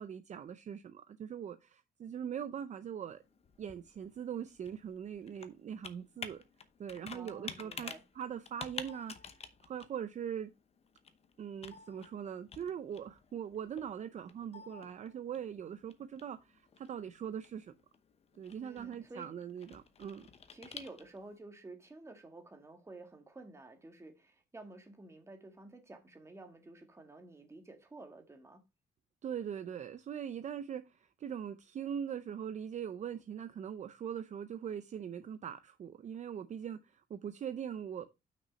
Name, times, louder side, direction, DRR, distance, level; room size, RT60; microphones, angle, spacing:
voice 1, 0.0-3.2 3.6-6.4 6.8-9.1 9.6-10.5 11.4-17.7 18.4-20.3 29.2-38.1, right 8 dB, 45° right, 0.5 m, -41 dB
Computer keyboard, 3.1-21.4, left 6 dB, 40° left, 0.9 m, -51 dB
voice 2, 7.1-8.0 18.6-19.3 20.5-28.6, right 2 dB, 15° right, 1.8 m, -51 dB
6.1 x 5.4 x 5.1 m
cardioid pair, 140°, 17 cm